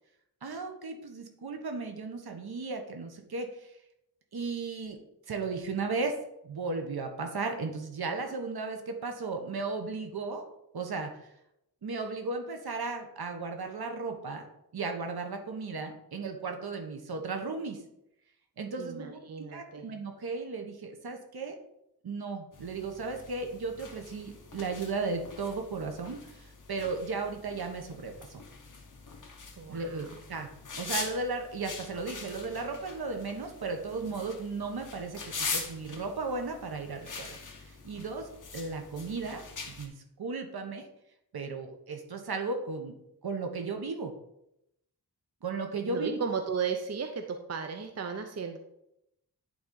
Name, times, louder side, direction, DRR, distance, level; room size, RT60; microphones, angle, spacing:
voice 1, 0.4-3.7 4.3-5.0 5.3-6.1 6.4-10.4 10.7-11.3 11.8-14.4 14.7-17.8 18.6-19.2 19.5-21.6 22.0-28.4 29.7-30.5 30.7-39.4 39.7-40.9 41.3-42.9 43.2-44.1 45.4-46.2, right 4 dB, 70° right, 4 dB, 1.1 m, -35 dB
voice 2, 18.8-19.9 29.6-30.0 45.9-48.6, right 6 dB, 40° right, 6 dB, 0.6 m, -35 dB
sound 1, 22.5-39.9, left 4 dB, 50° left, 1.2 m, -43 dB
10.5 x 3.9 x 3.9 m, 0.82 s
wide cardioid pair, 110°, 39 cm